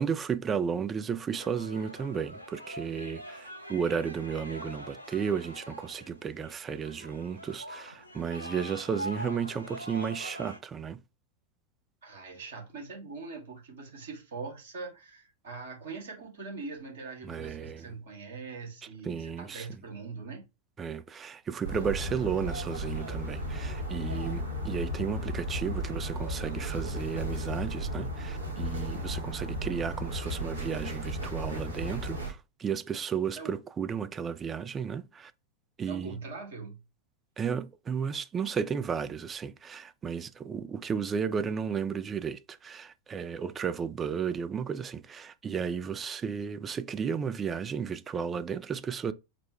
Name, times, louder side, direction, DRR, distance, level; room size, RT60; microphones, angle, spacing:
voice 1, 0.0-11.0 17.2-17.9 19.0-19.7 20.8-35.3 35.8-36.2 37.4-49.1, right 7 dB, 20° right, 0.4 m, -33 dB
sound 1, 1.4-10.6, equal, 85° left, 0.6 m, -43 dB
voice 2, 12.0-20.4 33.4-33.5 35.9-36.8, right 4 dB, 60° right, 1.9 m, -42 dB
sound 2, 21.6-32.3, equal, 75° right, 1.7 m, -34 dB
4.2 x 2.1 x 4.5 m
figure-of-eight pair, 90°, 0 cm